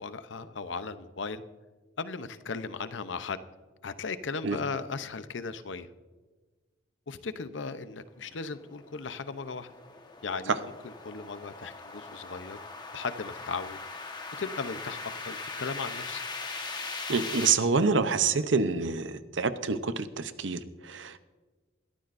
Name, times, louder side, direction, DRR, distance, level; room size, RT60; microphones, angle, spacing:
voice 1, 0.0-1.4 2.0-3.4 3.8-5.9 7.1-9.7 10.2-12.6 12.9-13.8 14.4-16.2, left 4 dB, 85° left, 12 dB, 0.7 m, -37 dB
sound 1, 8.5-17.5, left 3 dB, 25° left, 1.3 m, -40 dB
voice 2, 17.1-21.2, right 4 dB, 85° right, 12 dB, 0.7 m, -27 dB
21.0 x 13.5 x 2.6 m, 1.3 s
head